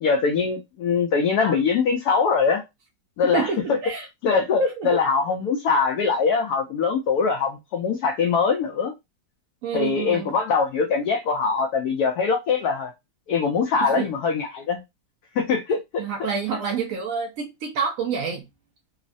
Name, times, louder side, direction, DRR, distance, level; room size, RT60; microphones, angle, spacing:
voice 1, 0.0-2.6 3.2-3.8 4.2-8.9 9.7-12.9 13.3-14.8 15.4-16.3, left 5 dB, 70° left, 0.9 m, -22 dB
voice 2, 3.2-4.1 4.6-5.0 9.6-10.3 13.8-14.1 16.0-18.5, right 5 dB, 75° right, 0.7 m, -27 dB
3.1 x 2.1 x 2.5 m
omnidirectional pair, 1.9 m